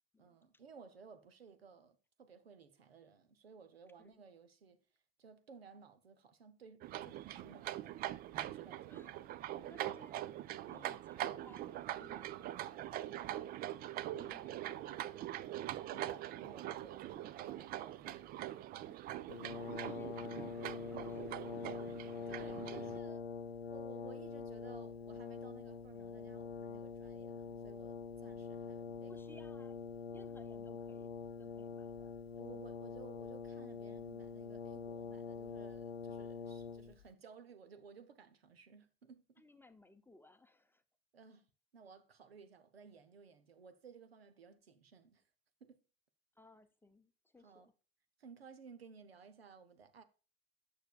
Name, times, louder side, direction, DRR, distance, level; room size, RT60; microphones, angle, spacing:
voice 1, 0.2-4.8 5.2-9.1 15.5-18.6 18.8-19.5 21.9-22.0 22.3-23.3 23.7-29.1 32.4-39.5 41.1-41.5 41.7-45.2 45.6-45.8 47.4-47.7 48.2-50.0, right 5 dB, 80° right, 0.9 m, -58 dB
sound 1, 6.8-23.0, right 13 dB, 30° right, 0.4 m, -43 dB
voice 2, 9.6-10.3 10.7-12.4 13.0-13.9 14.2-15.2 19.8-21.3 25.9-26.1 29.1-29.8 30.1-31.1 31.4-32.1 32.5-32.6 39.4-40.8 46.4-47.7, left 2 dB, 5° left, 0.7 m, -62 dB
Brass instrument, 19.3-37.1, left 5 dB, 90° left, 0.6 m, -45 dB
8.9 x 6.8 x 2.4 m
figure-of-eight pair, 75°, 30 cm